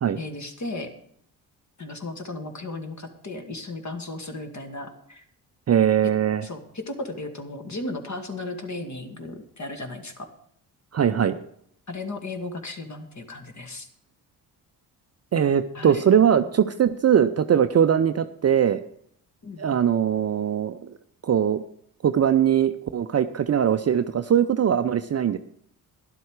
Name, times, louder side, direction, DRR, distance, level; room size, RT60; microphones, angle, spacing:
voice 1, 0.2-0.9 1.8-5.2 6.0-6.1 6.4-10.3 11.9-13.9 15.7-16.1 19.4-19.9, left 2 dB, 35° left, 6 dB, 2.2 m, -35 dB
voice 2, 5.7-6.4 10.9-11.4 15.3-18.8 19.6-20.8 21.2-21.6 22.0-25.4, right 9 dB, 30° right, 10 dB, 0.6 m, -21 dB
12.0 x 11.0 x 4.9 m, 0.66 s
hypercardioid pair, 45°, 48 cm